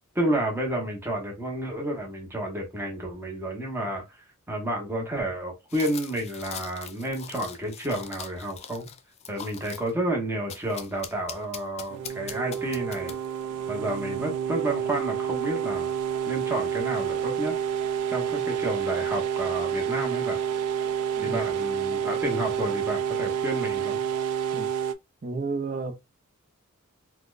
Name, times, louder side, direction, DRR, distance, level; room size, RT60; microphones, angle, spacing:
voice 1, 0.1-4.2 4.5-8.9 9.3-13.2 13.7-15.9 16.3-17.6 18.1-20.4 21.2-24.0, right 1 dB, 10° right, 0.9 m, -30 dB
sound 1, 5.7-9.9 10.5-13.4, left 8 dB, 30° left, 0.3 m, -42 dB
sound 2, 11.9-24.9, right 8 dB, 85° right, 0.4 m, -29 dB
voice 2, 25.2-25.9, right 3 dB, 40° right, 0.5 m, -32 dB
4.1 x 2.2 x 2.4 m
head